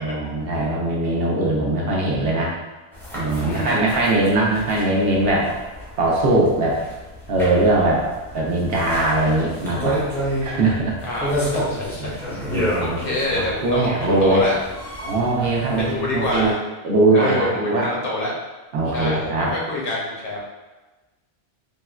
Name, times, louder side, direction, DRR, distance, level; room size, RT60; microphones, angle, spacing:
voice 1, 0.0-2.5 3.1-5.5 6.0-6.8 7.3-8.0 8.3-10.0 10.4-11.0 12.0-12.1 12.5-13.0 13.3-14.5 15.0-16.5 16.8-17.9 18.7-19.5, right 2 dB, 70° right, -3 dB, 0.8 m, -20 dB
sound 1, 2.9-16.5, equal, 5° left, 0.4 m, -30 dB
voice 2, 3.3-3.9 11.0-12.2 12.8-14.6 15.8-16.6 17.1-18.3 18.9-20.4, left 1 dB, 60° left, -4 dB, 0.9 m, -26 dB
3.6 x 2.1 x 2.3 m, 1.2 s
omnidirectional pair, 1.1 m